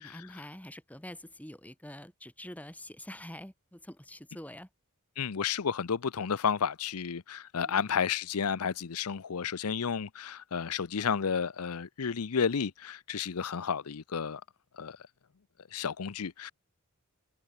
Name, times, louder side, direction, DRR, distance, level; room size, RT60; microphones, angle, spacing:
voice 1, 0.0-4.7 7.6-7.8, left 1 dB, 5° left, 2.3 m, -46 dB
voice 2, 5.2-14.4 14.8-15.0 15.7-16.5, left 6 dB, 90° left, 0.7 m, -32 dB
head